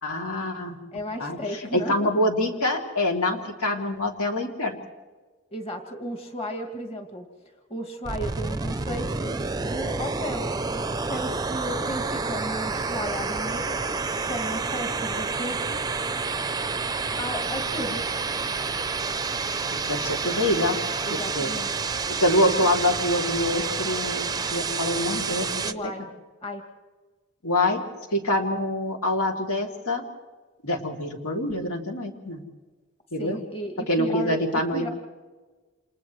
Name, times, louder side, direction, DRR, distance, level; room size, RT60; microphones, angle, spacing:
voice 1, 0.0-0.8 1.2-1.4 1.7-4.8 19.7-20.8 21.1-21.5 22.1-25.6 27.4-27.8 28.1-30.0 30.6-32.4 33.1-33.4 33.9-34.8, left 1 dB, 85° left, 1 dB, 2.9 m, -25 dB
voice 2, 0.9-2.1 5.5-7.3 7.7-10.5 11.1-13.8 14.3-15.8 17.2-18.0 21.0-21.7 25.6-26.1 26.4-26.6 33.2-34.9, equal, 25° left, 4 dB, 2.2 m, -34 dB
sound 1, 8.0-25.7, right 4 dB, 20° right, 0.5 m, -29 dB
29.0 x 28.5 x 3.2 m, 1.3 s
head